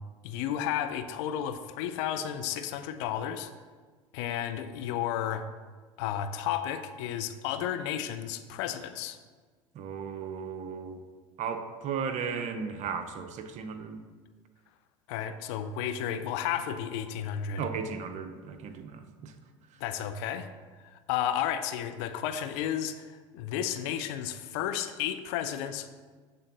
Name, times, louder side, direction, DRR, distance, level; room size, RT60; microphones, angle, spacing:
voice 1, 0.2-3.5 4.1-5.5 6.0-9.2 15.1-17.6 19.8-20.5 20.8-25.9, left 10 dB, 65° left, 9 dB, 0.6 m, -32 dB
voice 2, 9.7-11.0 11.4-14.0 17.6-19.3, right 6 dB, 50° right, 7 dB, 0.8 m, -35 dB
7.7 x 3.8 x 6.1 m, 1.5 s
hypercardioid pair, 80°, 16 cm